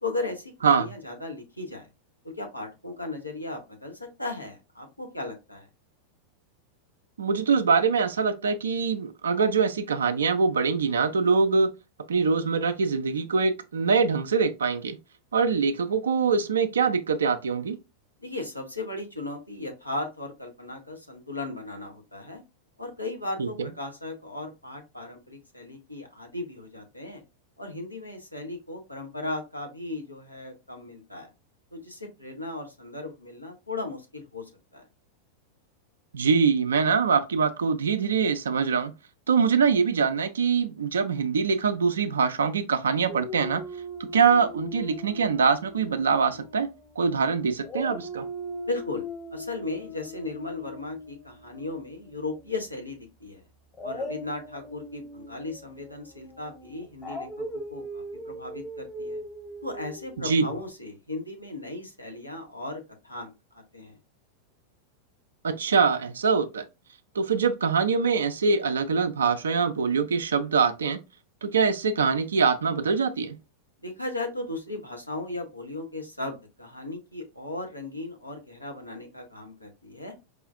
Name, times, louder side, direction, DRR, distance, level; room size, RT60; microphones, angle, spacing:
voice 1, 0.0-1.9 2.2-5.7 18.2-22.4 22.8-27.2 27.6-31.3 31.7-34.9 48.7-53.4 53.8-59.2 59.6-64.0 73.8-80.1, left 2 dB, 85° left, 0.8 m, -36 dB
voice 2, 7.2-11.7 12.1-15.0 15.3-17.8 23.4-23.5 36.1-38.9 39.3-43.6 44.0-46.7 47.0-48.3 60.2-60.4 65.4-66.6 67.2-71.0 71.4-73.4, right 5 dB, 70° right, 0.4 m, -24 dB
Dog, 43.1-47.2 47.6-52.6 53.7-60.7, left 1 dB, 20° left, 0.8 m, -40 dB
4.8 x 2.4 x 2.5 m
figure-of-eight pair, 90°, 0 cm